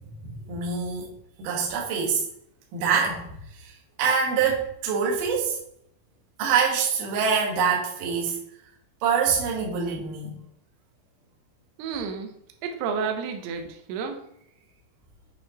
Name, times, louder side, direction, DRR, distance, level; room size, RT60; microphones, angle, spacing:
voice 1, 0.2-1.1 1.4-2.3 2.7-3.3 3.5-3.7 4.0-5.6 6.4-8.4 9.0-10.4, right 6 dB, 65° right, -2 dB, 2.1 m, -25 dB
voice 2, 11.8-12.3 12.6-14.2, right 6 dB, 90° right, 4 dB, 2.3 m, -30 dB
8.3 x 4.5 x 2.9 m, 0.73 s
omnidirectional pair, 5.8 m